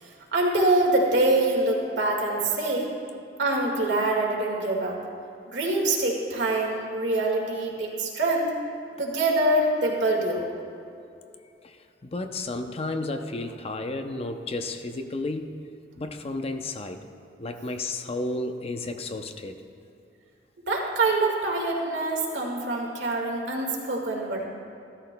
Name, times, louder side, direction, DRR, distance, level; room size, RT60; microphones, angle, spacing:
voice 1, 0.0-2.9 3.4-5.0 5.5-8.5 9.0-10.5 20.7-24.4, right 2 dB, 75° right, 0 dB, 1.8 m, -25 dB
voice 2, 12.0-15.5 16.0-17.0 17.4-19.6, left 2 dB, 35° left, 7 dB, 0.5 m, -32 dB
15.0 x 13.0 x 2.2 m, 2.6 s
head